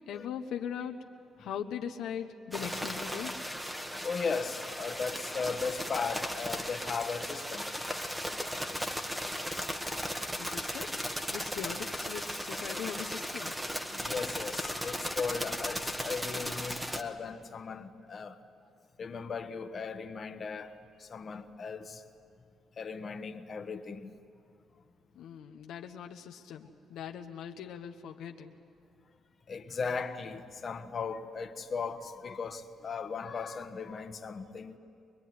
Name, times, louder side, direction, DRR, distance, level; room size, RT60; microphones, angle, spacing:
voice 1, 0.1-1.0 1.4-3.4 10.4-10.9 11.3-13.5 25.1-28.5, left 8 dB, 80° left, 1.1 m, -40 dB
sound 1, 2.5-17.0, equal, 5° right, 1.6 m, -36 dB
voice 2, 4.0-7.7 13.9-18.4 19.0-22.0 22.8-24.2 29.5-34.8, left 5 dB, 45° left, 1.4 m, -37 dB
23.5 x 22.0 x 9.6 m
cardioid pair, 90°, 0 cm